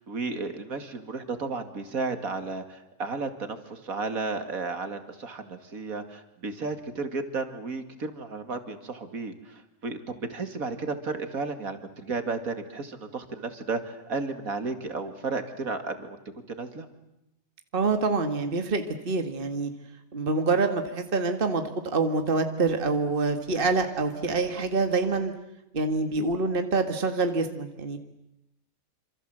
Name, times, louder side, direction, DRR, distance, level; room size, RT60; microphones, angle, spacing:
voice 1, 0.0-16.2 16.5-16.9, right 4 dB, 75° right, 8 dB, 2.7 m, -33 dB
voice 2, 17.7-19.7 20.1-21.6 21.9-25.3 25.7-28.0, right 3 dB, 40° right, 7 dB, 2.0 m, -26 dB
28.0 x 26.5 x 7.9 m, 0.87 s
omnidirectional pair, 1.5 m